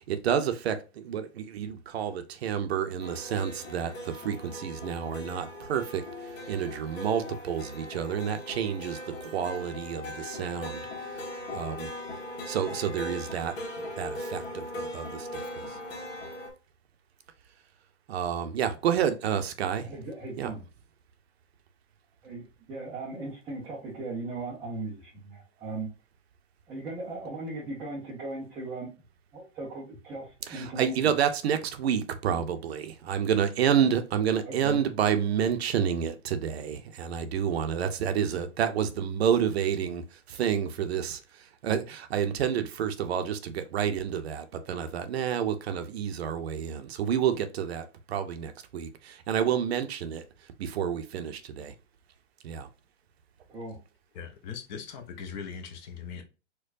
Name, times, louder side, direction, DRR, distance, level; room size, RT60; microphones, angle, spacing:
voice 1, 0.1-6.0 6.5-10.8 11.5-11.9 12.5-13.5 14.0-15.8 18.1-19.9 20.4-20.5 30.5-41.2 41.6-50.2 50.6-51.7 52.4-52.7, right 8 dB, 60° right, 0.6 m, -29 dB
sound 1, 3.0-16.5, left 1 dB, 55° left, 1.4 m, -39 dB
voice 2, 19.8-20.6 22.2-25.9 26.7-28.9 29.3-31.1 34.4-34.8 53.5-53.8, right 2 dB, 5° right, 0.4 m, -38 dB
voice 3, 54.1-56.2, left 6 dB, 40° left, 0.7 m, -40 dB
4.4 x 2.2 x 2.5 m
hypercardioid pair, 135°, 37 cm